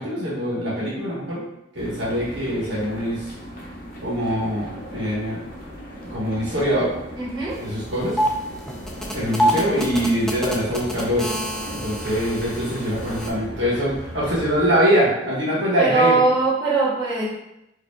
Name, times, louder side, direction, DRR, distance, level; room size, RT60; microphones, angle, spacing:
voice 1, 0.0-1.4 1.7-3.2 4.0-5.4 6.1-6.9 7.6-8.2 9.1-11.3 11.7-16.3, equal, 65° right, -7 dB, 1.4 m, -23 dB
sound 1, 1.8-14.8, equal, 45° left, 0.9 m, -37 dB
voice 2, 7.1-7.6 15.8-17.2, right 3 dB, 25° right, -11 dB, 1.3 m, -20 dB
sound 2, 7.5-7.6 7.9-13.3, equal, 5° left, 0.3 m, -27 dB
4.8 x 2.7 x 2.3 m, 0.86 s
head